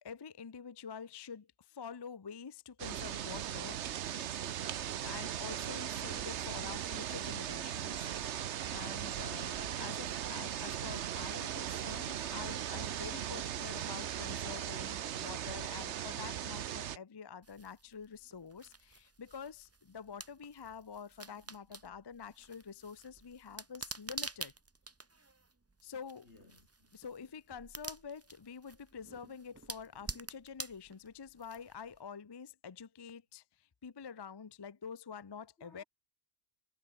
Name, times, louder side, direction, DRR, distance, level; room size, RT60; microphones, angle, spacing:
voice 1, 0.0-4.2 5.0-8.1 8.7-24.5 25.8-26.3 26.9-35.8, left 6 dB, 30° left, 0.5 m, -47 dB
sound 1, 2.8-17.0, right 10 dB, 80° right, 1.1 m, -38 dB
sound 2, 17.4-32.0, right 3 dB, 20° right, 0.5 m, -49 dB
voice 2, 21.3-21.6 26.2-27.1 35.6-35.8, left 3 dB, 75° left, 3.9 m, -62 dB
omnidirectional pair, 1.2 m